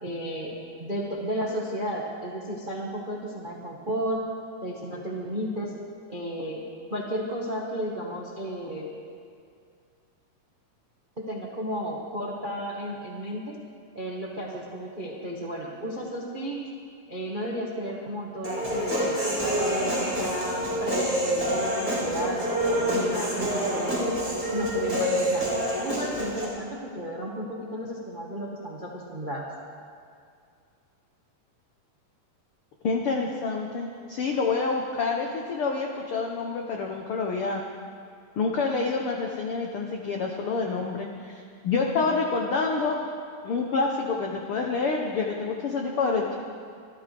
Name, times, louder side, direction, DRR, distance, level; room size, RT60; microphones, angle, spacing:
voice 1, 0.0-0.5 0.8-4.2 4.6-5.7 6.1-6.6 6.9-8.9 11.2-13.6 13.9-16.6 17.1-24.1 24.5-25.5 25.8-29.5, equal, 40° right, -3 dB, 0.6 m, -33 dB
Human voice, 18.4-26.4, equal, 5° right, 4.7 m, -27 dB
voice 2, 32.8-37.6 38.4-43.0 43.4-46.4, left 4 dB, 75° left, 1 dB, 1.2 m, -27 dB
25.5 x 13.5 x 3.4 m, 2.3 s
omnidirectional pair, 3.8 m